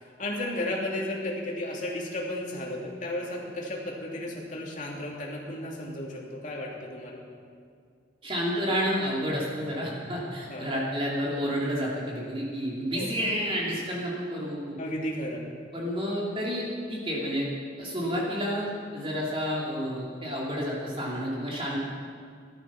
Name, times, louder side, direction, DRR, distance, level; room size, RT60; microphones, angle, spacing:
voice 1, 0.2-7.2 10.5-10.7 12.9-13.1 14.8-15.4, left 1 dB, 45° left, -2 dB, 2.9 m, -33 dB
voice 2, 8.2-14.8 15.7-17.5 17.8-21.8, equal, 30° right, -4 dB, 2.7 m, -30 dB
15.5 x 12.5 x 6.1 m, 2.2 s
head